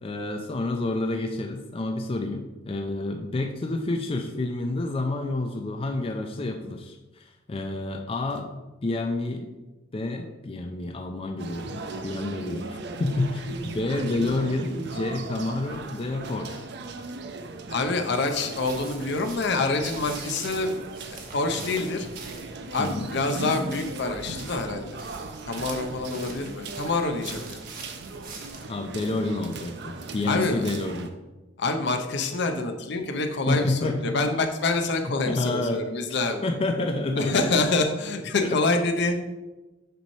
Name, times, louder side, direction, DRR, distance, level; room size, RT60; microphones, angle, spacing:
voice 1, 0.0-8.5 8.8-9.5 9.9-16.7 22.8-23.1 28.7-31.1 33.5-34.3 35.0-35.8 36.4-37.6 38.4-38.6, left 2 dB, 30° left, 4 dB, 0.4 m, -29 dB
sound 1, 11.4-31.1, right 3 dB, 65° right, 0.6 m, -38 dB
voice 2, 17.7-20.8 21.1-22.1 22.7-25.0 25.5-27.6 30.2-30.7 31.6-36.5 37.2-39.2, left 3 dB, 65° left, 5 dB, 0.7 m, -26 dB
sound 2, 18.3-28.6, right 4 dB, 50° right, 1.1 m, -44 dB
6.8 x 3.1 x 5.4 m, 1.1 s
head